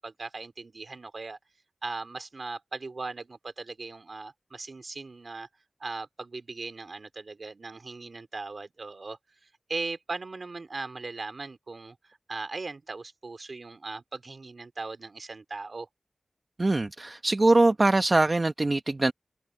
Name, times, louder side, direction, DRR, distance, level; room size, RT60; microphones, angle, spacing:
voice 1, 0.0-1.4 1.8-5.5 5.8-9.2 9.7-15.9, right 3 dB, 60° right, 3.7 m, -38 dB
voice 2, 16.6-19.1, right 2 dB, 40° right, 0.9 m, -22 dB
wide cardioid pair, 95°, 0 cm